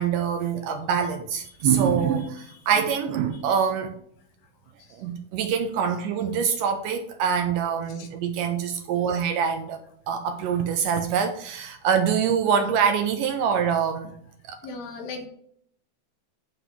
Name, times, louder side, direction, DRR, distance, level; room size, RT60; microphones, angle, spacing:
voice 1, 0.0-3.9 4.9-9.8 10.1-14.1 14.5-14.6, right 7 dB, 80° right, 7 dB, 2.0 m, -25 dB
voice 2, 14.6-15.3, left 3 dB, 80° left, 3 dB, 3.1 m, -37 dB
9.3 x 4.0 x 6.0 m, 0.67 s
omnidirectional pair, 4.2 m